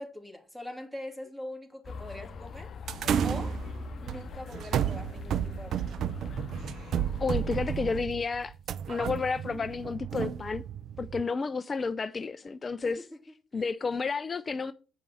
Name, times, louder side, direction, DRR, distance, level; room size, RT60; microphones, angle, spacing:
voice 1, 0.0-2.7 3.2-3.6 4.0-5.8 12.8-13.2 13.5-13.7, left 1 dB, 10° right, 3.1 m, -43 dB
sound 1, 1.8-8.0, left 4 dB, 45° left, 0.8 m, -42 dB
sound 2, 2.9-11.2, right 9 dB, 55° right, 0.5 m, -32 dB
voice 2, 7.2-8.5 8.9-10.6 11.0-13.1 13.5-14.7, left 4 dB, 30° left, 0.5 m, -31 dB
8.7 x 5.3 x 6.2 m
hypercardioid pair, 65°, 0 cm